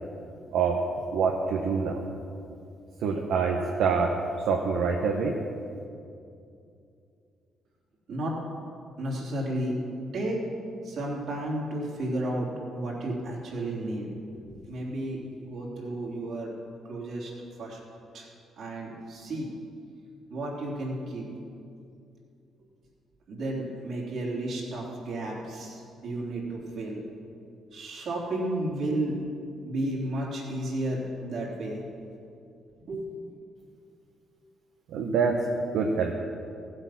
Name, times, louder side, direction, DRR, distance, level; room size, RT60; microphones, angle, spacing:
voice 1, 0.5-0.8 1.1-2.1 3.0-4.2 4.4-5.4 34.9-35.5 35.7-36.1, right 5 dB, 80° right, 1 dB, 1.0 m, -25 dB
voice 2, 9.0-9.8 10.1-10.4 10.8-16.5 16.9-17.3 17.6-17.8 18.1-18.3 18.6-19.5 20.3-21.3 23.3-27.0 27.7-29.2 29.6-31.8 32.9-33.1, right 1 dB, 65° right, -3 dB, 3.2 m, -32 dB
15.5 x 7.8 x 5.9 m, 2.6 s
cardioid pair, 90°, 0 cm